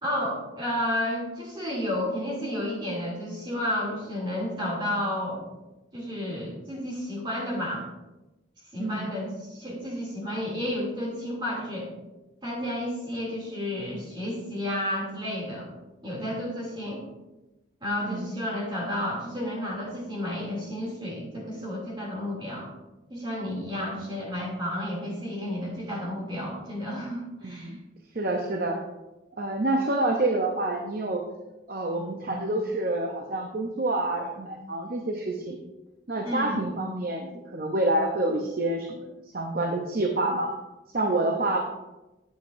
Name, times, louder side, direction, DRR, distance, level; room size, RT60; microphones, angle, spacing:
voice 1, 0.0-5.5 5.9-7.8 8.7-11.9 12.4-15.7 16.0-17.0 17.8-22.7 23.1-27.7 36.2-36.6, left 1 dB, 25° right, -4 dB, 2.7 m, -31 dB
voice 2, 8.8-9.1 18.0-18.3 27.4-27.8 28.1-28.8 29.4-31.2 31.7-35.6 36.1-39.1 39.3-40.5 40.9-41.6, right 2 dB, 50° right, 3 dB, 0.7 m, -27 dB
10.5 x 8.0 x 2.6 m, 1.0 s
head